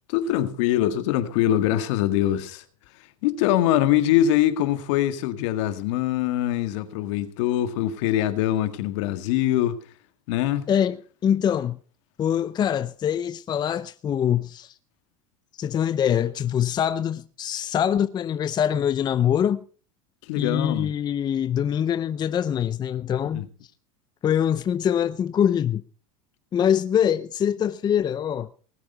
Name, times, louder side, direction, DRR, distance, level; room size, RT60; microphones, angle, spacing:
voice 1, 0.1-2.6 3.2-9.8 10.3-10.7 20.2-20.9 23.3-23.5, left 12 dB, 65° left, 1.9 m, -23 dB
voice 2, 10.7-11.8 12.2-14.8 15.6-19.6 20.4-23.4 24.2-25.8 26.5-28.5, left 9 dB, 25° left, 0.6 m, -24 dB
19.0 x 8.5 x 5.7 m
supercardioid pair, 115°, 17 cm